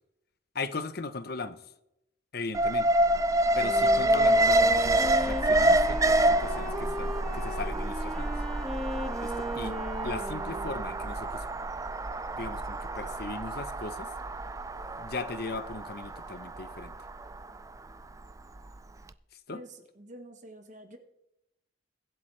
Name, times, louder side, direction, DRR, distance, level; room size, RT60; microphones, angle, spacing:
voice 1, 0.5-1.6 2.3-2.9 3.5-8.3 9.2-9.8 10.0-11.5 12.3-14.1 15.0-16.9 19.5-19.6, left 3 dB, 60° left, 0.8 m, -38 dB
Alarm, 2.5-18.6 19.0-19.1, right 1 dB, 20° right, 0.4 m, -27 dB
Wind instrument woodwind instrument, 3.5-11.2, equal, 5° left, 1.8 m, -37 dB
voice 2, 19.5-21.0, right 1 dB, 40° right, 1.2 m, -48 dB
23.0 x 8.1 x 3.3 m
head